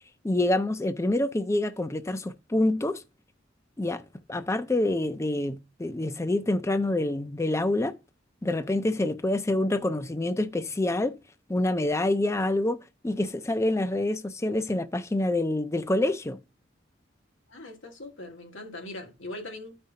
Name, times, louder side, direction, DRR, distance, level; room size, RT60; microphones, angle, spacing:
voice 1, 0.2-3.0 3.8-4.0 4.3-8.0 8.4-11.2 11.5-16.4, left 1 dB, 15° left, 0.4 m, -27 dB
voice 2, 17.5-19.8, left 1 dB, 85° left, 1.5 m, -41 dB
13.5 x 5.1 x 2.8 m
head